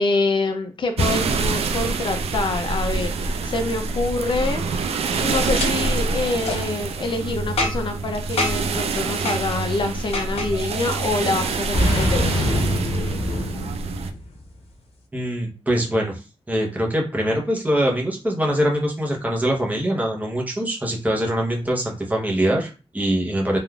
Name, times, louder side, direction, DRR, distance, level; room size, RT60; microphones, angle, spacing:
voice 1, 0.0-4.8 5.2-12.4, left 3 dB, 55° left, 6 dB, 0.4 m, -26 dB
sound 1, 1.0-14.1, right 4 dB, 80° right, 0.4 m, -26 dB
Boom, 5.5-5.7 6.4-6.6 7.6-8.0 8.4-8.7 9.2-9.4 10.1-10.5 11.7-14.4, left 1 dB, 85° left, 0.7 m, -24 dB
voice 2, 15.1-16.2 16.5-23.6, equal, 15° right, -1 dB, 0.8 m, -23 dB
3.4 x 2.4 x 2.3 m, 0.32 s
wide cardioid pair, 145°, 10 cm